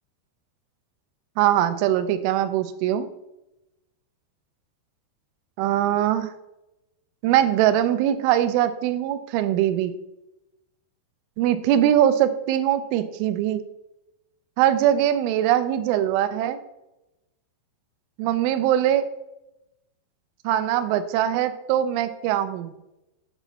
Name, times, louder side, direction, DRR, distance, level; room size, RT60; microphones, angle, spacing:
voice 1, 1.4-3.1 5.6-6.3 7.2-9.9 11.4-13.6 14.6-16.6 18.2-19.1 20.4-22.7, right 11 dB, 85° right, 11 dB, 2.9 m, -22 dB
7.9 x 3.0 x 5.6 m, 0.94 s
omnidirectional pair, 5.5 m